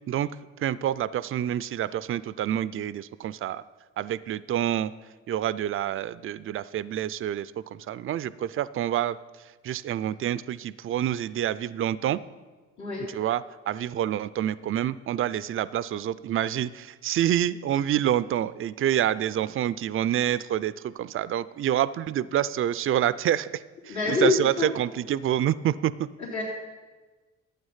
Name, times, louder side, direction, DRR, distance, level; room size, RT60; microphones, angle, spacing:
voice 1, 0.6-3.6 4.0-4.9 5.3-9.2 9.6-12.2 13.1-26.1, right 11 dB, 45° right, 17 dB, 0.4 m, -27 dB
voice 2, 23.9-24.7 26.2-26.4, left 4 dB, 75° left, -8 dB, 2.8 m, -26 dB
11.5 x 8.7 x 5.6 m, 1.3 s
cardioid pair, 90°, 30 cm